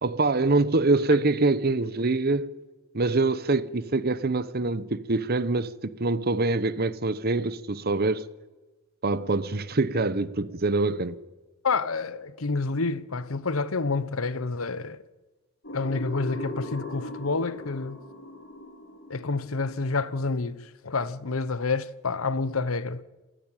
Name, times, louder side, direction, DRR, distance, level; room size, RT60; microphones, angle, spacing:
voice 1, 0.0-2.6 2.9-8.3 9.0-11.2, right 3 dB, 45° right, 0.9 m, -25 dB
voice 2, 11.6-15.0 15.7-18.0 19.1-23.0, left 4 dB, 90° left, 0.9 m, -28 dB
sound 1, 15.6-20.4, left 1 dB, 60° left, 2.4 m, -39 dB
28.0 x 10.0 x 9.0 m
head